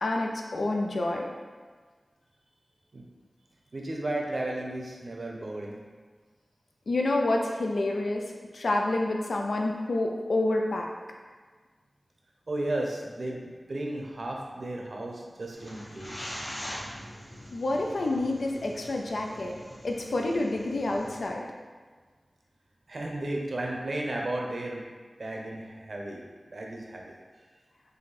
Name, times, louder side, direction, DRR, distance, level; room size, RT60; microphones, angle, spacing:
voice 1, 0.0-1.3 6.9-8.2 8.5-10.9 17.5-19.6 19.8-21.5, left 2 dB, 85° left, 1 dB, 0.4 m, -28 dB
voice 2, 3.7-5.8 12.5-16.4 22.9-24.9 25.2-26.2 26.5-27.1, right 1 dB, 70° right, 0 dB, 0.7 m, -34 dB
sound 1, 15.5-21.3, equal, 40° left, 1.2 m, -43 dB
4.0 x 2.6 x 4.1 m, 1.5 s
cardioid pair, 40°, 0 cm